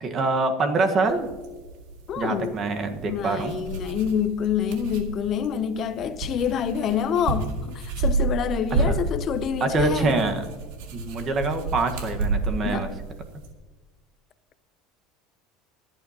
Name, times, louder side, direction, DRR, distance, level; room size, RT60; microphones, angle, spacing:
voice 1, 0.0-1.3 2.2-3.6 8.9-9.0 9.6-10.4 10.9-12.9, right 3 dB, 30° right, 1.4 m, -25 dB
sound 1, 1.1-13.5, right 3 dB, 80° right, 2.0 m, -31 dB
voice 2, 2.1-2.6 3.1-10.3 12.6-12.9, left 8 dB, 35° left, 0.6 m, -27 dB
26.0 x 8.9 x 2.9 m
supercardioid pair, 145°, 0 cm